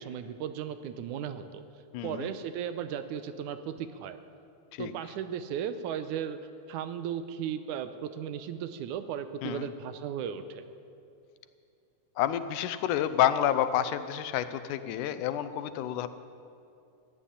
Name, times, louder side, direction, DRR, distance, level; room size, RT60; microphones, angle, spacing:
voice 1, 0.0-1.6 2.0-4.2 4.8-6.4 6.7-10.6, right 8 dB, 85° right, 10 dB, 2.2 m, -36 dB
voice 2, 1.9-2.3 4.7-4.9 9.4-9.7 12.2-16.1, left 11 dB, 85° left, 12 dB, 2.2 m, -29 dB
15.0 x 9.1 x 10.0 m, 2.5 s
omnidirectional pair, 3.5 m